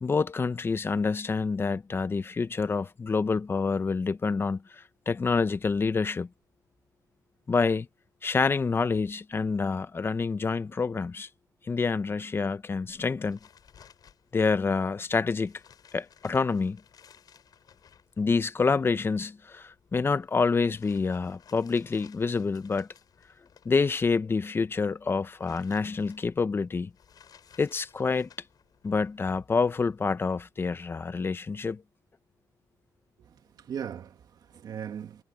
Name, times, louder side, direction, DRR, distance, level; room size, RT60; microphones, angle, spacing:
voice 1, 0.0-6.3 7.5-7.9 8.2-11.3 11.7-13.4 14.3-15.5 15.9-16.8 18.2-22.9 23.6-26.9 27.6-28.3 28.8-31.8, left 4 dB, 30° left, 1.0 m, -27 dB
sound 1, 12.8-30.1, left 8 dB, 60° left, 7.1 m, -59 dB
voice 2, 33.2-35.2, right 8 dB, 60° right, 1.8 m, -39 dB
cardioid pair, 100°, 7 cm